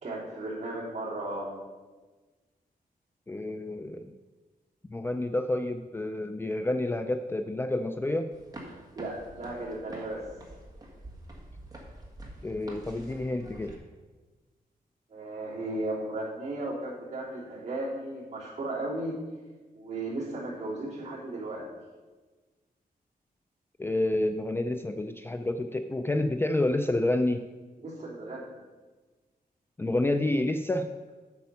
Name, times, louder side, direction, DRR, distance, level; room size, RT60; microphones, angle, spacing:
voice 1, 0.0-1.5 8.7-10.2 15.1-19.2 19.7-21.7 27.8-28.6, right 2 dB, 45° right, -6 dB, 3.0 m, -35 dB
voice 2, 3.3-4.2 4.9-8.3 12.4-13.8 23.8-27.5 29.8-30.9, left 1 dB, 15° left, 7 dB, 0.3 m, -29 dB
sound 1, 8.3-13.7, right 1 dB, 25° right, 1.5 m, -46 dB
8.5 x 7.1 x 5.4 m, 1.3 s
wide cardioid pair, 175°, 16 cm